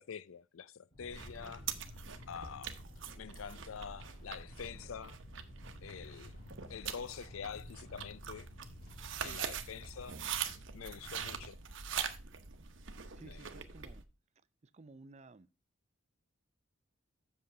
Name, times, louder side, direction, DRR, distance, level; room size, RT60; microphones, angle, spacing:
voice 1, 0.0-1.7 2.3-2.8 3.2-5.2 5.8-6.4 6.7-8.5 9.2-10.2 10.7-11.6 13.2-13.5, left 7 dB, 90° left, 0.5 m, -46 dB
sound 1, 0.9-11.5, left 1 dB, 50° left, 4.7 m, -54 dB
sound 2, 1.1-14.0, right 7 dB, 70° right, 1.0 m, -43 dB
voice 2, 13.2-14.0 14.6-15.5, right 3 dB, 35° right, 0.5 m, -55 dB
8.0 x 6.8 x 4.8 m
head